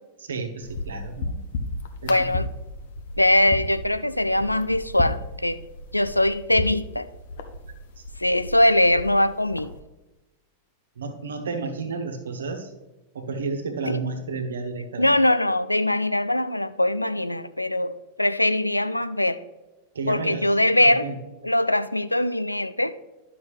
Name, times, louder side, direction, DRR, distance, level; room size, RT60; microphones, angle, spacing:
voice 1, 0.2-1.3 2.0-2.4 8.0-8.1 11.0-12.7 13.1-15.1 19.9-20.5 20.8-21.2, right 4 dB, 65° right, 5 dB, 1.1 m, -31 dB
sound 1, 0.6-9.8, left 2 dB, 55° left, 0.8 m, -34 dB
voice 2, 2.1-2.5 3.2-5.6 5.9-7.1 8.2-9.7 13.9-14.0 15.0-19.4 20.1-21.1 21.4-22.9, left 1 dB, 85° left, 14 dB, 0.3 m, -22 dB
11.0 x 6.0 x 3.2 m, 1.1 s
figure-of-eight pair, 90°, 0 cm